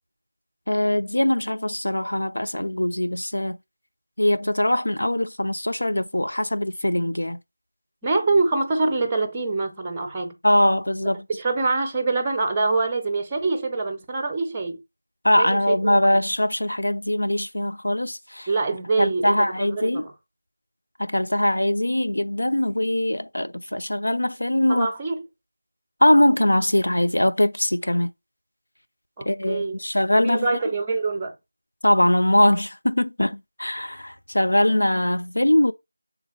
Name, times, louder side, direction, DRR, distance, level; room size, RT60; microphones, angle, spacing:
voice 1, 0.7-3.6 4.2-7.4 10.4-11.3 15.2-18.5 19.0-20.1 21.0-24.9 26.0-28.1 29.2-30.5 31.8-35.7, left 1 dB, 65° left, 0.8 m, -22 dB
voice 2, 8.0-10.4 11.3-14.8 15.3-16.1 18.5-20.1 24.7-25.2 29.2-29.8 30.1-31.3, right 3 dB, 10° right, 0.8 m, -25 dB
7.1 x 3.9 x 4.4 m
figure-of-eight pair, 170°, 0 cm